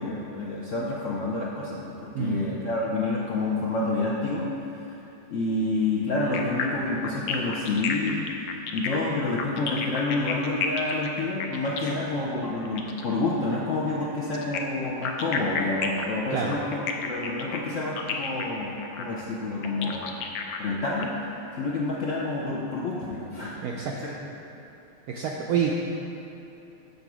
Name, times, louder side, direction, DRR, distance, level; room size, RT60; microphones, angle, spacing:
voice 1, 0.0-4.5 4.8-5.0 5.3-8.3 8.7-20.1 20.6-21.1 21.6-23.6 23.9-24.1, left 2 dB, 65° left, -4 dB, 0.7 m, -28 dB
sound 1, 6.3-13.1 14.3-21.0, left 6 dB, 85° left, 1.3 m, -32 dB
voice 2, 23.6-24.0 25.1-25.7, right 7 dB, 75° right, -1 dB, 0.8 m, -27 dB
6.8 x 4.0 x 6.0 m, 3.0 s
omnidirectional pair, 2.0 m